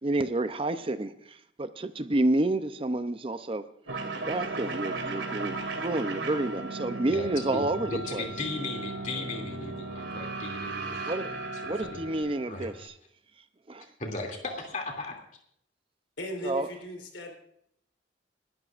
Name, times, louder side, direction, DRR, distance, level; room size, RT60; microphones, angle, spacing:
voice 1, 0.0-3.6 4.1-8.3 11.1-11.3 11.7-12.9 13.7-13.9 16.4-16.7, right 2 dB, 30° right, 0.6 m, -29 dB
sound 1, 3.9-12.8, right 3 dB, 80° right, 2.5 m, -36 dB
voice 2, 7.1-11.0 11.6-12.0 12.5-12.9 14.0-15.1, left 2 dB, 40° left, 2.7 m, -37 dB
voice 3, 16.2-17.3, equal, 90° left, 3.5 m, -37 dB
29.0 x 13.0 x 2.5 m
head